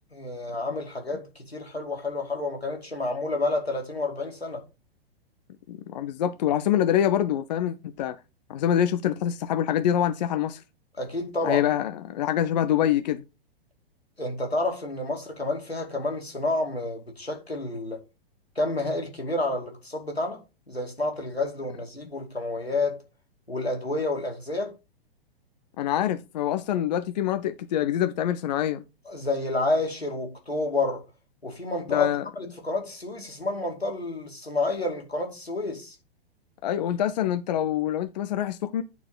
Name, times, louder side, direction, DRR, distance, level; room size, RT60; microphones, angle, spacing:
voice 1, 0.1-4.6 11.0-11.6 14.2-18.0 18.6-23.0 23.5-24.7 29.1-31.0 31.4-32.1 32.4-36.0, left 2 dB, 90° left, 2.4 m, -29 dB
voice 2, 5.7-8.2 8.5-10.6 11.4-13.2 25.8-28.8 31.9-32.2 36.6-38.8, left 10 dB, 45° left, 0.7 m, -25 dB
9.4 x 4.4 x 3.9 m
figure-of-eight pair, 110°, 30 cm